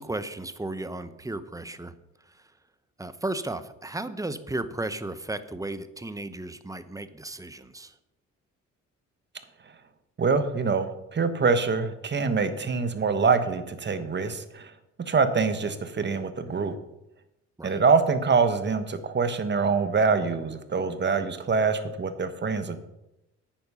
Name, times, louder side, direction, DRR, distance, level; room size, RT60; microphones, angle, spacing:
voice 1, 0.0-2.6 3.0-8.0 17.6-17.8, right 2 dB, 10° right, 12 dB, 0.9 m, -35 dB
voice 2, 10.2-14.7 15.0-16.8 17.6-22.8, right 5 dB, 35° right, 10 dB, 1.2 m, -25 dB
9.6 x 9.1 x 5.6 m, 0.90 s
cardioid pair, 90°, 30 cm